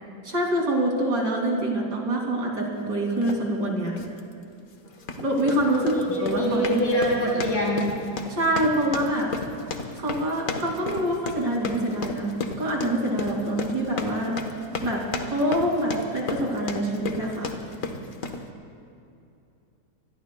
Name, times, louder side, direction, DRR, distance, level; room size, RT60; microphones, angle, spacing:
voice 1, 0.2-4.0 5.2-5.8 6.2-6.8 8.3-9.3 10.0-14.4 14.8-15.0 15.3-17.5, right 1 dB, 65° right, -1 dB, 3.2 m, -25 dB
sound 1, 3.2-3.4 4.0-4.2 4.9-18.5, left 4 dB, 50° left, 1.4 m, -34 dB
voice 2, 5.6-7.9, equal, 65° left, -4 dB, 5.3 m, -25 dB
25.5 x 21.0 x 2.3 m, 2.7 s
omnidirectional pair, 2.0 m